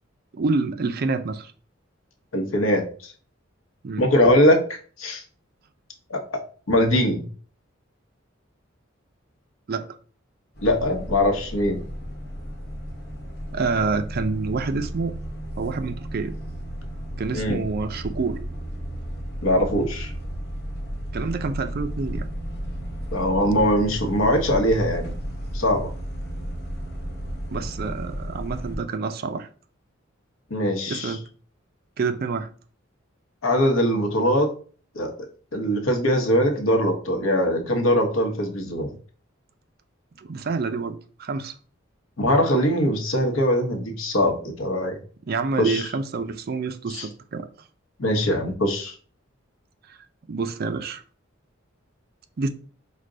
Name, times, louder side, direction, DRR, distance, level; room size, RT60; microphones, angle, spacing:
voice 1, 0.3-1.5 3.8-4.1 9.7-10.0 13.5-15.1 15.6-16.3 17.2-18.4 21.1-22.3 27.5-29.5 30.9-31.2 32.0-32.5 40.2-41.5 45.3-47.5 49.9-50.0 50.3-51.0 52.4-52.5, right 4 dB, 50° right, 0.4 m, -27 dB
voice 2, 2.3-2.8 4.0-5.2 6.1-6.4 6.7-7.2 10.6-11.8 17.3-17.6 19.4-20.1 23.1-25.1 25.5-25.9 30.5-31.2 33.4-34.5 34.9-35.1 35.5-38.9 42.2-45.0 45.6-45.8 46.9-47.1 48.0-48.9, equal, 90° left, 0.9 m, -21 dB
sound 1, 10.6-28.8, equal, 50° left, 1.0 m, -33 dB
4.9 x 2.2 x 3.8 m
head